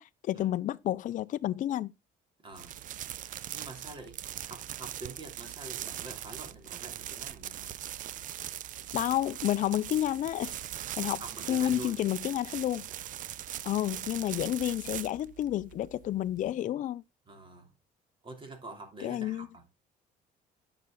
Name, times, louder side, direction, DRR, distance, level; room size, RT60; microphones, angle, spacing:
voice 1, 0.0-1.9 8.9-11.2 11.5-12.8 13.6-17.0 19.0-19.5, left 12 dB, 50° left, 0.4 m, -30 dB
voice 2, 2.4-2.8 3.5-4.2 4.4-7.8 11.2-12.0 17.3-17.7 18.2-19.6, right 3 dB, 30° right, 3.0 m, -46 dB
sound 1, 2.5-16.5, right 11 dB, 50° right, 0.5 m, -41 dB
9.3 x 5.9 x 3.7 m
cardioid pair, 110°, 17 cm